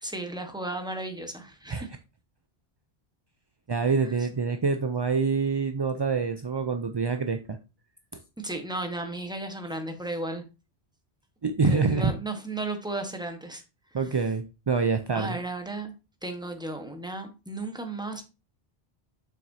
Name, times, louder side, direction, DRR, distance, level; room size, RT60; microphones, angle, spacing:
voice 1, 0.0-1.9 8.4-10.4 11.7-13.6 14.0-14.1 15.1-15.9 16.2-18.2, right 2 dB, 5° right, 5 dB, 1.0 m, -34 dB
voice 2, 3.7-7.6 11.4-12.1 13.9-15.4, right 4 dB, 45° right, 7 dB, 0.3 m, -26 dB
7.1 x 5.8 x 2.7 m, 0.30 s
omnidirectional pair, 1.1 m